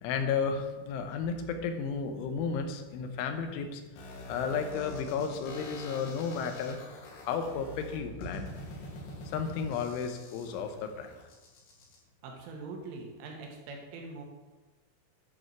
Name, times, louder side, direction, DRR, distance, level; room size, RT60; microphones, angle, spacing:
voice 1, 0.0-3.8 4.3-6.8 7.2-8.5 9.3-11.1, left 6 dB, 85° left, 6 dB, 3.4 m, -33 dB
sound 1, 4.0-12.0, left 1 dB, 70° left, 3.9 m, -45 dB
voice 2, 12.2-14.2, right 3 dB, 85° right, 1 dB, 4.1 m, -43 dB
9.4 x 9.0 x 4.7 m, 1.2 s
omnidirectional pair, 5.4 m